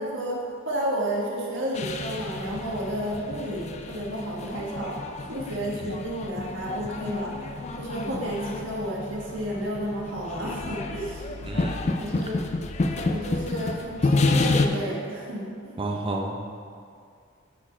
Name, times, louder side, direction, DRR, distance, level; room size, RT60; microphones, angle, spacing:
voice 1, 0.0-5.0 5.3-7.5 7.8-11.3 11.5-12.4 13.0-15.7, right 1 dB, 65° right, -3 dB, 1.5 m, -31 dB
sound 1, 1.7-14.7, left 3 dB, 35° left, 0.4 m, -29 dB
voice 2, 11.4-11.8 15.8-16.5, right 2 dB, 25° right, 1 dB, 0.5 m, -30 dB
9.2 x 4.6 x 4.3 m, 2.3 s
head